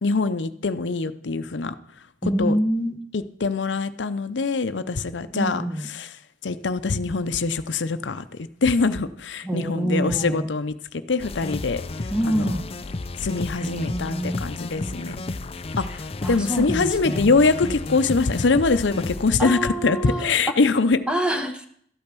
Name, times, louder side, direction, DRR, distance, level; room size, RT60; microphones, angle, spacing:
voice 1, 0.0-1.7 2.2-2.6 3.1-6.2 6.4-8.2 8.6-11.8 12.3-12.6 13.2-15.2 15.8-21.0, left 4 dB, 90° left, 11 dB, 0.7 m, -23 dB
voice 2, 2.2-3.0 5.3-5.9 9.4-10.5 12.1-12.7 13.6-14.4 14.8-15.2 16.2-17.4 19.4-20.3 21.1-21.7, right 1 dB, 5° right, 6 dB, 1.2 m, -26 dB
sound 1, 11.2-19.3, left 2 dB, 35° left, 0.5 m, -32 dB
13.0 x 8.7 x 6.1 m, 0.65 s
head